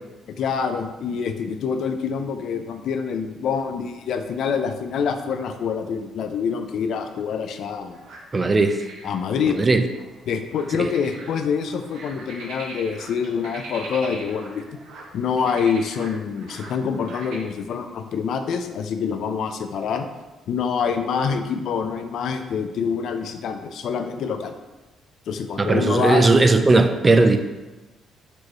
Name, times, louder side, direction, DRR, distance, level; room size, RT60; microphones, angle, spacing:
voice 1, 0.3-8.0 9.0-9.6 10.3-14.7 15.1-20.1 20.5-24.5 25.3-26.3, left 6 dB, 70° left, 7 dB, 0.3 m, -26 dB
sound 1, 7.9-8.2 8.6-15.1 15.4-17.4, right 2 dB, 80° right, 0.9 m, -41 dB
voice 2, 8.3-8.8 9.6-9.8 10.8-10.9 25.6-27.4, right 3 dB, 25° right, 7 dB, 0.3 m, -17 dB
4.3 x 3.0 x 3.1 m, 1.1 s
cardioid pair, 100°, 0 cm